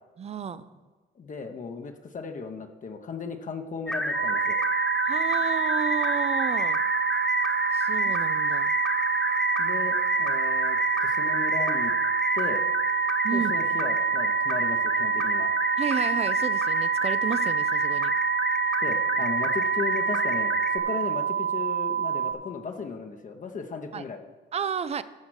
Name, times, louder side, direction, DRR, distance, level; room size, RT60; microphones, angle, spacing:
voice 1, 0.2-0.7 5.1-6.8 7.7-8.7 13.2-13.5 15.8-18.1 23.9-24.0 24.5-25.0, right 7 dB, 30° right, 14 dB, 0.5 m, -32 dB
voice 2, 1.2-4.6 8.1-8.2 9.6-11.9 12.3-12.6 13.3-15.5 18.8-24.2, left 5 dB, 40° left, 5 dB, 1.1 m, -36 dB
sound 1, 3.9-20.8, left 1 dB, 5° left, 1.3 m, -28 dB
sound 2, 4.1-22.3, right 9 dB, 75° right, 1.4 m, -28 dB
14.0 x 5.1 x 6.4 m, 1.3 s
cardioid pair, 90°, 20 cm